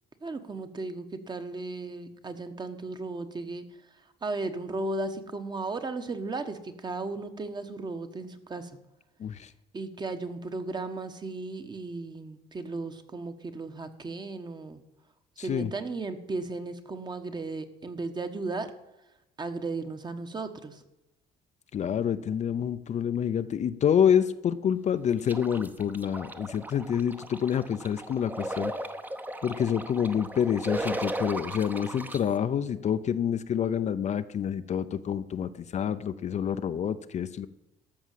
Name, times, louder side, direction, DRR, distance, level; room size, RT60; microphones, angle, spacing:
voice 1, 0.2-3.6 4.2-8.8 9.7-14.8 15.4-18.7 19.4-20.8, right 3 dB, 25° right, 8 dB, 1.2 m, -35 dB
voice 2, 9.2-9.5 15.4-15.7 21.7-28.7 29.4-37.5, left 8 dB, 45° left, 11 dB, 0.6 m, -27 dB
sound 1, 25.2-32.2, right 1 dB, 10° right, 0.8 m, -36 dB
13.5 x 6.2 x 7.6 m, 0.93 s
cardioid pair, 110°, 17 cm